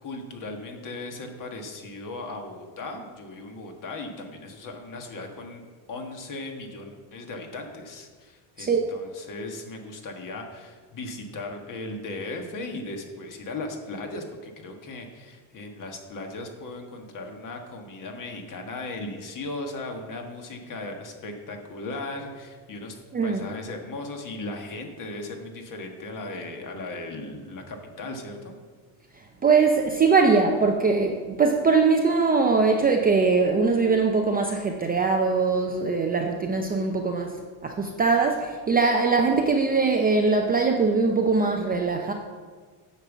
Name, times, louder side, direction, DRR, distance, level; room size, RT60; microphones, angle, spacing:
voice 1, 0.0-5.6 5.9-22.9 23.2-28.5, left 2 dB, 40° left, 3 dB, 1.5 m, -37 dB
voice 2, 29.4-42.1, right 4 dB, 20° right, 2 dB, 0.5 m, -22 dB
9.0 x 5.4 x 7.3 m, 1.5 s
cardioid pair, 145°, 49 cm